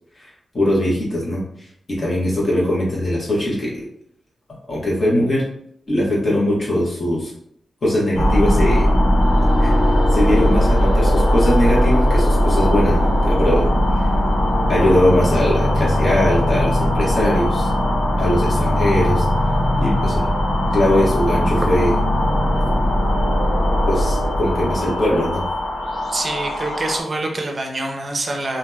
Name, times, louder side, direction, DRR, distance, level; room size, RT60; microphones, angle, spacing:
voice 1, 0.5-1.4 2.0-3.7 4.7-5.4 5.9-7.3 7.8-8.9 9.6-9.7 10.1-13.7 13.9-14.1 14.7-17.7 18.2-19.2 19.8-20.2 20.7-21.9 23.9-25.4, left 1 dB, 45° left, -6 dB, 1.3 m, -20 dB
sound 1, 8.1-27.0, left 1 dB, 80° left, 0.8 m, -18 dB
voice 2, 26.1-28.6, right 2 dB, 40° right, 3 dB, 0.5 m, -25 dB
2.9 x 2.6 x 2.3 m, 0.71 s
wide cardioid pair, 90°, 0 cm